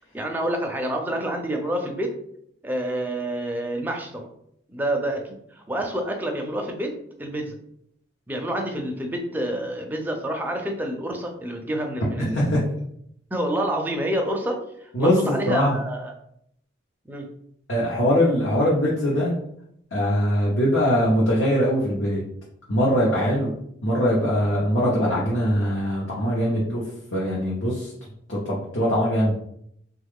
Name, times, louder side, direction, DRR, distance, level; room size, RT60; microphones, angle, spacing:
voice 1, 0.1-2.1 2.6-4.3 4.7-6.9 7.2-7.6 8.3-12.5 13.3-16.1 17.1-17.3, right 1 dB, 10° right, 2 dB, 0.4 m, -28 dB
voice 2, 12.2-12.6 14.9-15.8 17.7-19.3 19.9-22.2 22.7-23.5 23.8-26.8 27.1-27.9 28.3-29.3, equal, 75° left, -6 dB, 0.8 m, -22 dB
3.3 x 2.3 x 3.5 m, 0.72 s
head